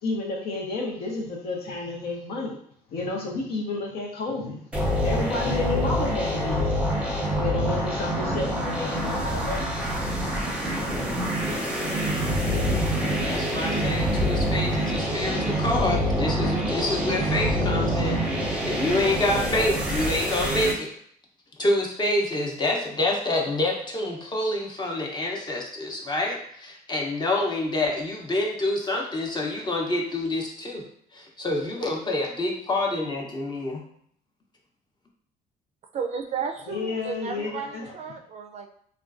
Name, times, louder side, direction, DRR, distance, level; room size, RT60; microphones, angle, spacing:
voice 1, 0.0-2.6 2.9-4.6 5.0-7.0 7.4-9.7 36.7-37.9, left 3 dB, 70° left, -1 dB, 0.8 m, -31 dB
sound 1, 4.7-20.7, equal, 5° right, 0.8 m, -26 dB
voice 2, 13.2-20.9 21.6-30.8 31.1-33.8, left 2 dB, 25° left, 0 dB, 0.7 m, -27 dB
voice 3, 35.9-38.7, right 6 dB, 40° right, 4 dB, 0.4 m, -33 dB
3.6 x 2.2 x 2.5 m, 0.65 s
cardioid pair, 110°, 17 cm